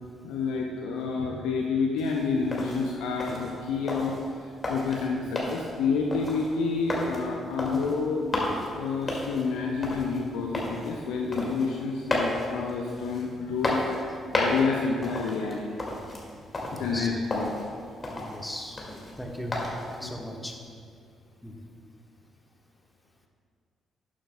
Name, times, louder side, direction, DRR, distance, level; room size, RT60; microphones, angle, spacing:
voice 1, 0.2-8.3 8.5-14.0 14.3-15.9 16.7-17.8 20.0-20.1, left 4 dB, 70° left, 0 dB, 0.6 m, -29 dB
sound 1, 2.0-20.0, left 1 dB, 35° left, 2.0 m, -34 dB
voice 2, 16.7-17.2 18.2-18.9 19.2-19.5 19.9-20.6 21.4-21.5, left 1 dB, 10° left, 1 dB, 1.3 m, -38 dB
12.0 x 8.8 x 2.2 m, 2.2 s
figure-of-eight pair, 40°, 0 cm